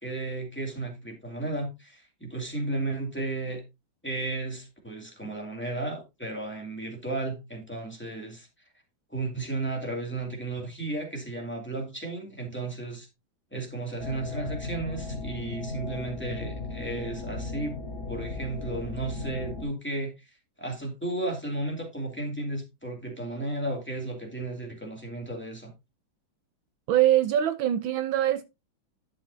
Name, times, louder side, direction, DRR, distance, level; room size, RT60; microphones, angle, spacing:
voice 1, 0.0-3.6 4.0-8.5 9.1-13.1 13.5-17.8 18.1-20.1 20.6-25.7, right 2 dB, 5° left, 2.4 m, -34 dB
sound 1, 14.0-19.6, left 2 dB, 25° left, 3.5 m, -36 dB
voice 2, 26.9-28.5, right 12 dB, 75° right, 1.5 m, -23 dB
11.5 x 7.3 x 2.7 m
omnidirectional pair, 2.3 m